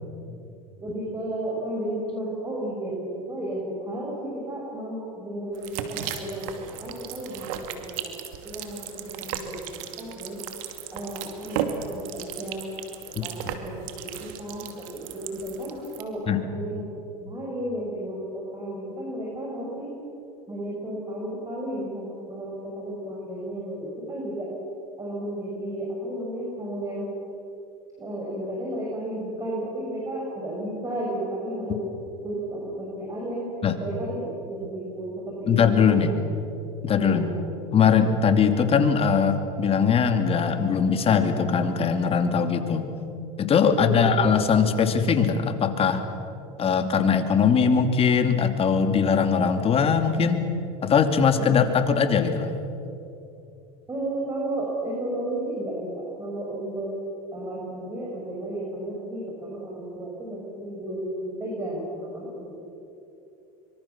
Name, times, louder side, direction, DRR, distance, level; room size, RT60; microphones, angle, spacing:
voice 1, 0.8-8.1 8.4-10.4 10.9-12.7 13.2-13.3 13.6-13.7 14.0-14.1 14.4-16.9 17.2-19.9 20.5-24.5 25.0-27.1 28.0-31.8 32.2-33.5 33.8-35.6 35.8-36.1 37.0-37.3 43.6-44.0 51.4-51.5 53.9-56.9 57.3-62.6, right 1 dB, 20° right, -3 dB, 6.9 m, -33 dB
sound 1, 5.5-16.0, right 9 dB, 70° right, 2.6 m, -36 dB
voice 2, 35.5-36.1 36.8-37.3 37.7-42.9 43.4-46.0 46.6-50.4 50.8-52.5, left 6 dB, 35° left, 7 dB, 2.6 m, -21 dB
25.0 x 24.0 x 7.3 m, 2.8 s
supercardioid pair, 105°, 18 cm